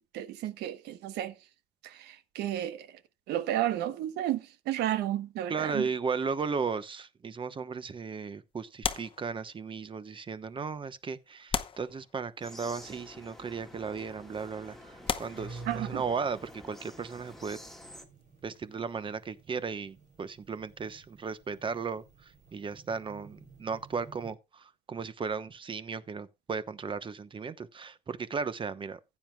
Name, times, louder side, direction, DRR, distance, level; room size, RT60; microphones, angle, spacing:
voice 1, 0.1-1.3 1.8-2.9 3.3-4.4 4.7-5.9 15.7-16.0, right 12 dB, 85° right, 1.0 m, -32 dB
voice 2, 5.5-17.6 18.4-29.0, right 5 dB, 30° right, 1.0 m, -36 dB
sound 1, 8.8-9.9 10.7-10.8 11.5-12.6 13.6-13.8 14.4-14.5 15.0-16.3 18.2-20.0 20.2-20.4, left 6 dB, 30° left, 0.9 m, -37 dB
sound 2, 12.4-18.0, left 1 dB, ahead, 2.0 m, -49 dB
sound 3, 13.6-24.3, right 3 dB, 50° right, 4.4 m, -51 dB
15.5 x 9.3 x 2.3 m
cardioid pair, 110°, 17 cm